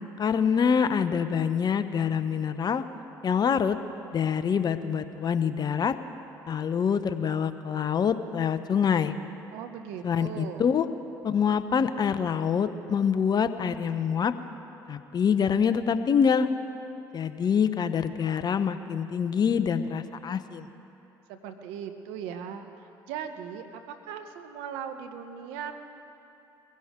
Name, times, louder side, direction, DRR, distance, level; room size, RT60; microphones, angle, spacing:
voice 1, 0.2-2.8 3.2-3.8 4.1-6.0 6.5-9.1 10.0-10.8 11.2-14.3 14.9-16.5 17.1-20.7, left 7 dB, 45° left, 11 dB, 0.9 m, -25 dB
voice 2, 9.5-10.7 21.3-23.8 24.1-25.7, right 8 dB, 75° right, 7 dB, 1.0 m, -38 dB
22.0 x 16.0 x 3.7 m, 2.9 s
hypercardioid pair, 60°, 10 cm